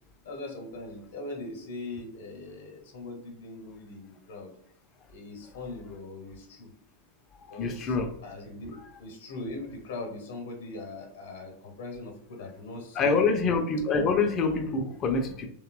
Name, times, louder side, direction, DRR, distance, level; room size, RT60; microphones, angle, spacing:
voice 1, 0.2-4.5 5.1-6.7 7.5-8.0 8.2-13.4, left 2 dB, 60° left, 2 dB, 0.7 m, -41 dB
voice 2, 7.5-8.1 12.9-15.5, left 4 dB, 30° left, 6 dB, 0.4 m, -26 dB
2.8 x 2.1 x 2.4 m, 0.69 s
figure-of-eight pair, 90°, 0 cm